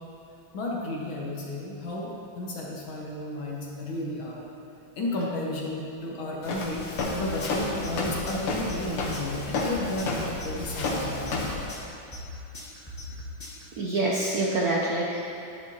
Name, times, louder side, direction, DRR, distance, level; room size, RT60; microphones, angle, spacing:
voice 1, 0.5-4.5 5.0-11.3, left 1 dB, 65° left, -3 dB, 2.1 m, -33 dB
Walk footsteps, 6.4-11.7, left 3 dB, 80° left, 2.0 m, -31 dB
sound 1, 7.0-13.6, equal, 20° left, 1.5 m, -39 dB
voice 2, 13.8-15.3, right 2 dB, 65° right, -3 dB, 1.0 m, -26 dB
10.5 x 10.0 x 2.9 m, 2.7 s
omnidirectional pair, 2.4 m